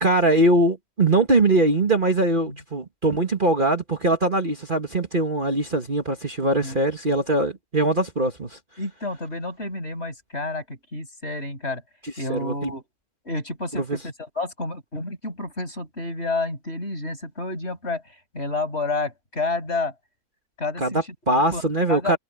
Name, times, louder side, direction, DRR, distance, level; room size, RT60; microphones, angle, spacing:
voice 1, 0.0-8.6 12.3-12.7 13.7-14.0 20.8-22.2, right 2 dB, 35° right, 2.0 m, -22 dB
voice 2, 8.8-11.8 12.2-12.8 13.2-18.0 18.3-19.9 20.6-21.0 21.5-21.6 21.9-22.2, left 2 dB, 40° left, 8.2 m, -30 dB
omnidirectional pair, 1.6 m